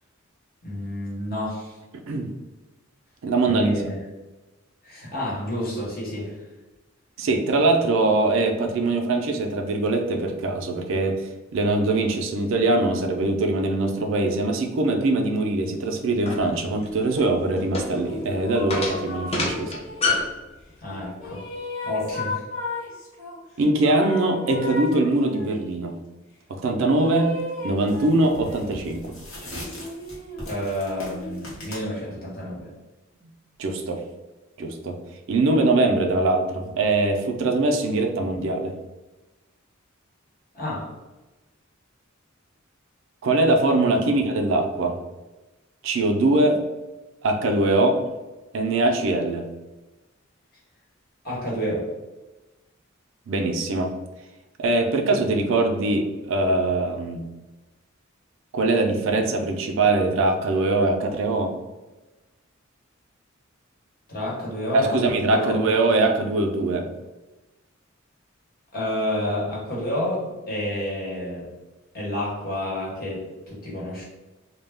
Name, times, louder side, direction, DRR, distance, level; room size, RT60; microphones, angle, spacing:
voice 1, 0.6-1.8 3.4-4.0 4.8-6.4 20.8-21.4 21.8-22.4 30.5-32.7 40.5-40.9 44.0-44.1 51.2-51.9 64.1-65.6 68.7-71.5 71.9-74.0, left 1 dB, 45° left, -5 dB, 1.0 m, -29 dB
voice 2, 3.2-3.7 7.2-19.8 23.6-26.0 26.5-29.1 33.6-34.0 34.6-35.0 35.3-38.7 43.2-45.0 45.8-46.6 47.2-48.1 48.5-49.5 53.3-53.9 54.6-57.3 58.5-61.5 64.7-66.9, right 2 dB, 65° right, 4 dB, 0.4 m, -22 dB
sound 1, 16.2-20.4, left 3 dB, 30° left, 0.5 m, -28 dB
sound 2, 18.1-20.3 20.9-23.4 23.8-25.7 26.9-28.8 29.6-31.9, left 2 dB, 70° left, 0.6 m, -35 dB
sound 3, 27.0-27.2 27.8-31.8, equal, 90° left, 1.0 m, -39 dB
2.2 x 2.0 x 3.3 m, 1.1 s
head